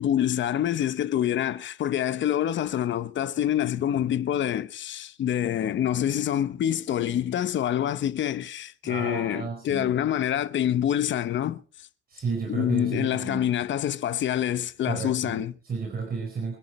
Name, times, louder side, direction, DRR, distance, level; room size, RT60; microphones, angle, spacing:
voice 1, 0.0-11.6 12.5-15.5, left 10 dB, 80° left, 0.9 m, -26 dB
voice 2, 8.8-10.0 12.1-13.5 14.8-15.4 15.7-16.6, right 5 dB, 50° right, 4.6 m, -32 dB
25.5 x 11.0 x 4.3 m
wide cardioid pair, 140°, 19 cm